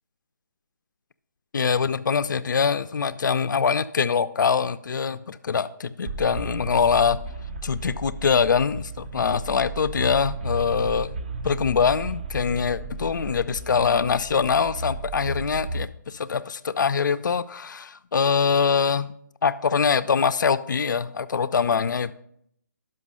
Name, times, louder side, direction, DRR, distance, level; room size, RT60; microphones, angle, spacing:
voice 1, 1.5-7.2 7.6-11.1 11.4-19.1 19.4-22.1, left 6 dB, 80° left, 14 dB, 0.4 m, -23 dB
sound 1, 6.1-15.9, right 2 dB, 30° right, 0.5 m, -34 dB
6.2 x 5.4 x 5.4 m, 0.69 s
hypercardioid pair, 170°, 10 cm